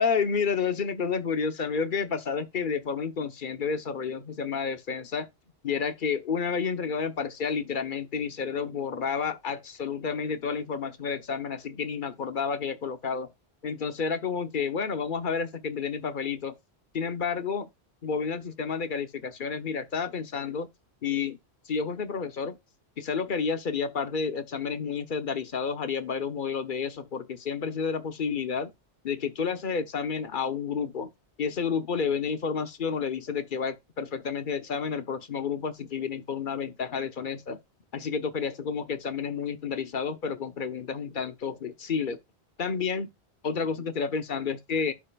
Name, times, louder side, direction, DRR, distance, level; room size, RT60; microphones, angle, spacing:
voice 1, 0.0-5.3 5.6-13.3 13.6-16.5 16.9-17.7 18.0-20.7 21.0-21.4 21.7-22.6 23.0-28.7 29.0-31.1 31.4-37.6 37.9-42.2 42.6-43.1 43.4-44.9, left 6 dB, 50° left, 1.1 m, -30 dB
11.5 x 5.5 x 2.4 m
omnidirectional pair, 1.1 m